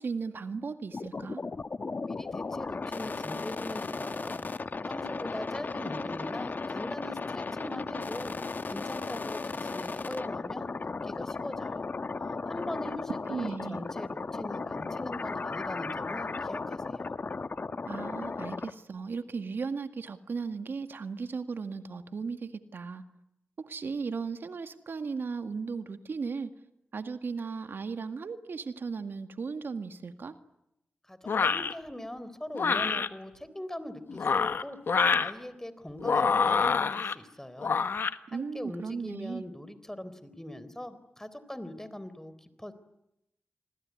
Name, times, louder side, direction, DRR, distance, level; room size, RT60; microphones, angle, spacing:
voice 1, 0.0-1.4 13.3-13.8 17.9-23.0 23.6-26.5 26.9-30.3 38.3-39.5, right 5 dB, 75° right, 8 dB, 1.9 m, -36 dB
sound 1, 0.9-18.7, left 4 dB, 55° left, 1.2 m, -36 dB
voice 2, 2.0-4.5 4.9-8.3 8.7-11.9 12.5-17.1 31.0-34.8 35.2-37.8 38.3-42.7, left 1 dB, 10° left, 14 dB, 3.8 m, -41 dB
sound 2, 31.3-31.7 32.5-33.1 34.1-35.3 36.0-37.1 37.6-38.1, left 5 dB, 75° left, 1.2 m, -26 dB
28.0 x 20.5 x 9.6 m, 0.83 s
cardioid pair, 45°, 4 cm